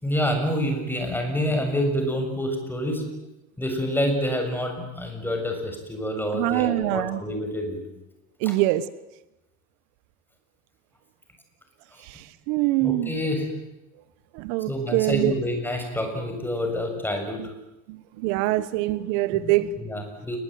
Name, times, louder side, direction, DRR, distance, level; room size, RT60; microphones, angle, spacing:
voice 1, 0.0-3.0 3.6-7.8 8.4-8.6 12.8-13.5 14.7-17.5 19.4-20.4, equal, 5° left, 4 dB, 7.2 m, -27 dB
voice 2, 6.3-7.2 8.4-8.8 12.5-13.1 14.4-15.3 18.2-19.7, right 16 dB, 75° right, 16 dB, 1.4 m, -23 dB
29.0 x 21.0 x 9.5 m, 0.94 s
cardioid pair, 135°, 35 cm